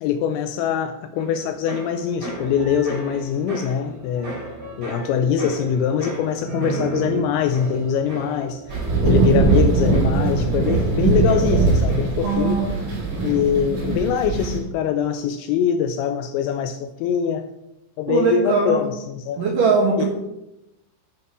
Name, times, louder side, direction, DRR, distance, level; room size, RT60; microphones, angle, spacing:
voice 1, 0.0-4.4 4.8-12.7 13.2-17.5 18.0-19.5 20.0-20.1, left 8 dB, 85° left, 9 dB, 2.6 m, -23 dB
sound 1, 1.2-12.8 13.0-13.6, right 2 dB, 20° right, 4.2 m, -35 dB
sound 2, 8.7-14.6, right 3 dB, 50° right, 5.1 m, -20 dB
voice 2, 12.2-12.7 18.1-18.8 19.4-20.1, right 4 dB, 65° right, -1 dB, 2.2 m, -20 dB
10.5 x 7.6 x 4.8 m, 0.90 s
omnidirectional pair, 5.7 m